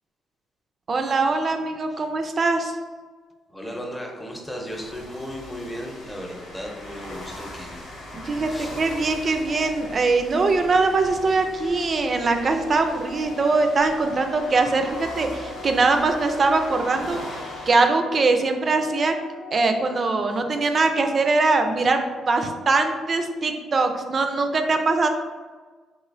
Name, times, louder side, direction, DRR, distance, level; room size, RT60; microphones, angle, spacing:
voice 1, 0.9-2.7 8.1-17.2 17.7-19.2 19.5-25.1, right 3 dB, 40° right, 6 dB, 0.4 m, -22 dB
voice 2, 3.5-7.8 8.5-8.7, equal, 10° left, 0 dB, 0.7 m, -35 dB
sound 1, 4.7-17.7, left 1 dB, 85° left, 0.9 m, -40 dB
Organ, 9.5-20.5, left 5 dB, 60° left, 0.4 m, -43 dB
3.3 x 3.0 x 2.5 m, 1.4 s
cardioid pair, 90°, 0 cm